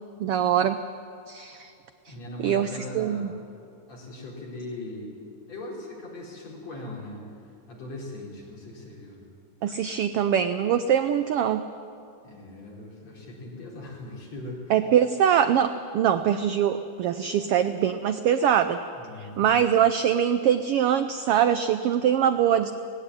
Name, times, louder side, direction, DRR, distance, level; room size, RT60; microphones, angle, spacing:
voice 1, 0.2-0.8 1.3-1.7 2.1-2.2 2.4-2.7 2.9-3.3 9.6-11.6 14.7-18.8 19.4-22.7, right 9 dB, 90° right, 10 dB, 1.2 m, -23 dB
voice 2, 2.1-3.2 3.9-5.2 5.5-7.2 7.7-9.2 12.2-14.8 19.0-19.6, left 2 dB, 60° left, -3 dB, 5.3 m, -39 dB
19.0 x 16.0 x 9.7 m, 2.5 s
omnidirectional pair, 3.4 m